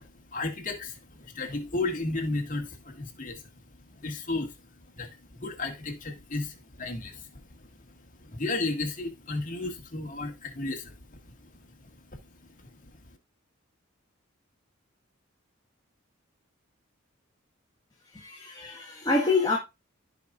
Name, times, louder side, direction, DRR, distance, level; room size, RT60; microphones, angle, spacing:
voice 1, 0.0-13.2, left 2 dB, 40° left, 1.9 m, -35 dB
voice 2, 18.1-19.6, left 3 dB, 20° left, 1.5 m, -26 dB
14.5 x 5.2 x 2.4 m
head